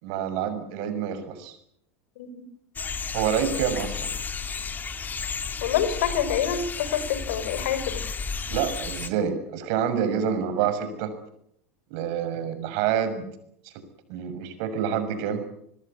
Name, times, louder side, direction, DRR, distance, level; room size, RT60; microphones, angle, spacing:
voice 1, 0.0-1.6 3.1-4.1 8.5-11.1 11.9-13.2 13.6-13.7 14.1-15.4, right 8 dB, 60° right, 10 dB, 6.6 m, -27 dB
sound 1, 2.8-9.1, left 5 dB, 25° left, 2.8 m, -33 dB
voice 2, 5.6-8.0, left 9 dB, 70° left, 13 dB, 5.0 m, -27 dB
26.0 x 20.5 x 8.4 m, 0.71 s
hypercardioid pair, 90°, 8 cm